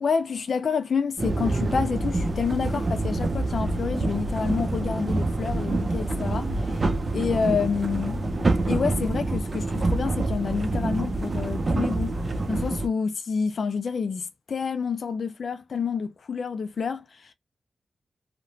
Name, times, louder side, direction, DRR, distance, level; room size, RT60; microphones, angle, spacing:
voice 1, 0.0-6.9 7.1-12.1 12.5-17.3, left 5 dB, 70° left, 0.3 m, -28 dB
sound 1, 1.2-12.9, right 2 dB, 45° right, 0.5 m, -26 dB
2.8 x 2.1 x 2.6 m
cardioid pair, 60°, 0 cm